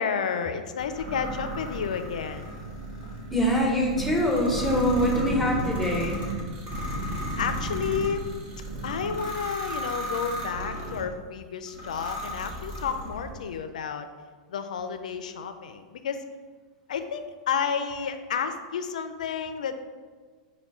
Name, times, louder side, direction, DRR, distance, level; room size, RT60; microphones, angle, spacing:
voice 1, 0.0-2.5 7.4-8.2 8.8-14.1 14.5-16.2 16.9-19.7, left 6 dB, 85° left, 9 dB, 0.3 m, -31 dB
sound 1, 0.8-11.1 11.7-13.3, equal, 40° right, 1.4 m, -34 dB
voice 2, 3.3-6.3, equal, 5° left, -2 dB, 0.9 m, -24 dB
4.4 x 2.2 x 4.2 m, 1.5 s
hypercardioid pair, 120°, 4 cm